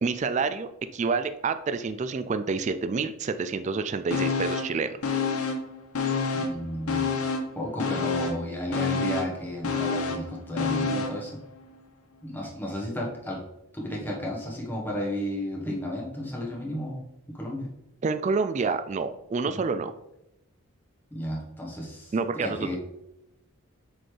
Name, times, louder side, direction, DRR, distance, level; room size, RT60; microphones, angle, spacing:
voice 1, 0.0-4.9 18.0-19.9 22.1-22.8, right 4 dB, 35° right, 10 dB, 0.3 m, -28 dB
sound 1, 4.1-4.8 5.0-6.6 6.9-11.2 11.6-11.7, left 4 dB, 85° left, 0.9 m, -28 dB
voice 2, 6.3-7.1 7.5-11.4 12.2-13.4 13.7-17.7 19.5-19.6 21.1-22.8, left 1 dB, 10° left, -3 dB, 1.3 m, -33 dB
7.7 x 4.2 x 3.3 m, 0.87 s
head